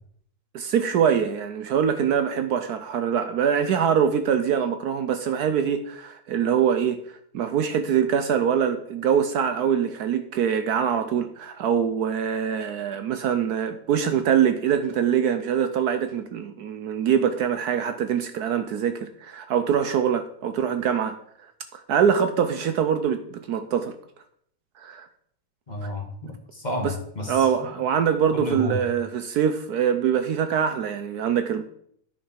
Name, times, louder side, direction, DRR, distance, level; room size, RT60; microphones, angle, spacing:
voice 1, 0.5-7.0 7.3-21.2 21.7-23.9 24.8-25.1 26.8-26.9 27.3-31.6, right 8 dB, 70° right, 1.1 m, -24 dB
voice 2, 25.7-27.5 28.3-28.8, left 1 dB, 25° left, 1.5 m, -31 dB
10.0 x 5.6 x 5.7 m
omnidirectional pair, 1.9 m